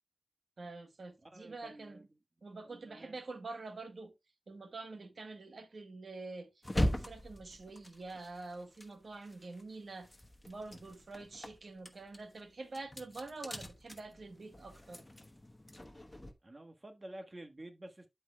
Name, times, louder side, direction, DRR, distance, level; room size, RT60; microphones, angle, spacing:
voice 1, 0.6-2.1 2.4-4.1 4.5-10.1 10.5-15.1, right 3 dB, 80° right, 1.2 m, -46 dB
voice 2, 1.2-2.1 2.6-3.2 16.4-18.1, right 1 dB, 35° right, 1.4 m, -50 dB
sound 1, 6.6-9.6 9.9-16.3, equal, 20° left, 1.0 m, -40 dB
12.0 x 4.7 x 2.2 m
wide cardioid pair, 85°, 0 cm